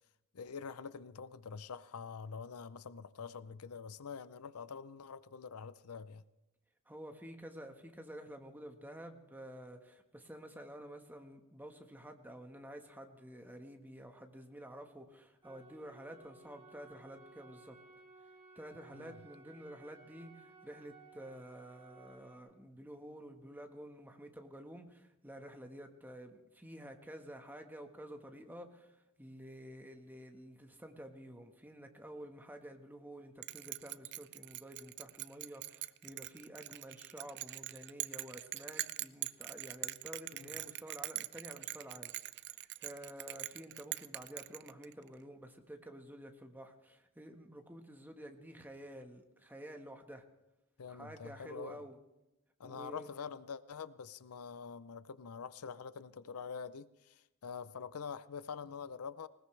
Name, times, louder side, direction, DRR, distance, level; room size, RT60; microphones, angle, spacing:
voice 1, 0.3-6.2 18.9-19.2 40.3-40.5 50.8-51.8 52.6-59.3, left 6 dB, 85° left, 0.6 m, -45 dB
voice 2, 6.9-17.8 18.5-50.2 50.9-52.0 52.6-53.1, equal, 10° right, 1.4 m, -50 dB
sound 1, 15.4-22.4, right 3 dB, 25° right, 3.6 m, -59 dB
Bell, 33.4-45.1, right 16 dB, 55° right, 0.5 m, -43 dB
20.0 x 19.5 x 3.3 m
head